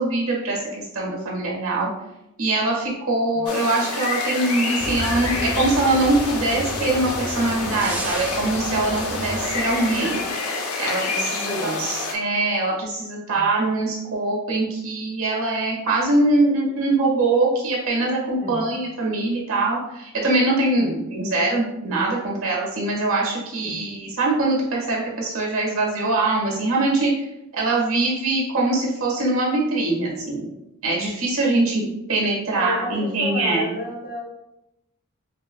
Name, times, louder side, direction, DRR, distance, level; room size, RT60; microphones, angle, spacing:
voice 1, 0.0-1.9 2.4-10.2 10.8-27.3 27.5-30.5 30.8-33.7, right 2 dB, 70° right, -2 dB, 1.4 m, -23 dB
sound 1, 3.5-12.1, left 3 dB, 90° left, 0.7 m, -28 dB
sound 2, 4.8-10.3, equal, 5° right, 0.4 m, -33 dB
voice 2, 11.5-12.0 13.3-13.5 18.4-18.7 20.8-21.0 23.6-23.9 32.5-34.2, left 1 dB, 35° left, -2 dB, 1.0 m, -31 dB
5.3 x 3.0 x 2.2 m, 0.88 s
head